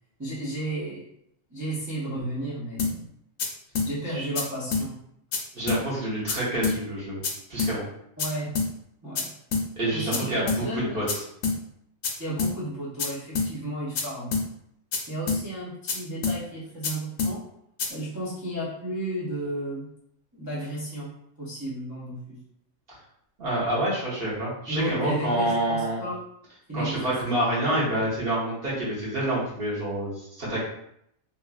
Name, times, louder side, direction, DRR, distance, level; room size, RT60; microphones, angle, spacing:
voice 1, 0.2-1.1 1.5-3.1 3.8-5.0 8.2-8.6 9.0-9.3 9.9-11.1 12.2-14.4 15.1-17.4 17.9-19.9 20.3-22.4 24.7-26.2 26.7-27.1, right 1 dB, 30° right, -8 dB, 0.3 m, -33 dB
sound 1, 2.8-2.9 3.4-3.5 3.8-3.9 4.4-4.5 4.7-4.9 5.3-5.4 5.7-5.8 6.3-6.4 6.6-6.8 7.2-7.3 7.6-7.7 8.2-8.3 8.6-8.7 9.2-9.3 9.5-9.7 10.1-10.2 10.5-10.6 11.1-11.2 11.4-11.6 12.0-12.1 12.4-12.5 13.0-13.1 13.4-13.5 14.0-14.1 14.3-14.5 14.9-15.0 15.3-15.4 15.9-16.0 16.2-16.4 16.8-16.9 17.2-17.3 17.8-17.9, left 4 dB, 70° left, 0.9 m, -26 dB
voice 2, 5.5-7.2 7.5-7.9 9.8-11.2 23.4-26.0 26.7-30.6, right 1 dB, 45° right, -7 dB, 1.1 m, -27 dB
3.0 x 2.5 x 2.3 m, 0.75 s
omnidirectional pair, 1.5 m